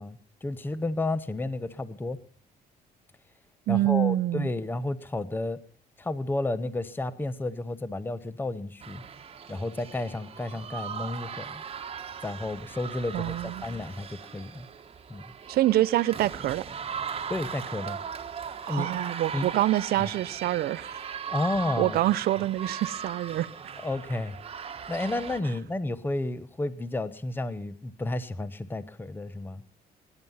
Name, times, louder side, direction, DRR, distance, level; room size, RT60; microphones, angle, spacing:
voice 1, 0.0-2.2 3.7-5.6 6.0-9.0 9.5-11.6 12.2-14.7 15.1-15.2 17.3-18.0 18.7-18.9 19.3-19.5 20.0-20.1 21.3-22.0 23.8-29.6, left 2 dB, 10° left, 1.0 m, -32 dB
voice 2, 3.7-4.5 13.1-13.6 15.5-16.6 18.7-21.1 21.8-23.5, right 14 dB, 65° right, 0.7 m, -26 dB
sound 1, 8.8-25.4, right 7 dB, 35° right, 1.4 m, -39 dB
22.5 x 11.0 x 5.6 m
cardioid pair, 110°, 17 cm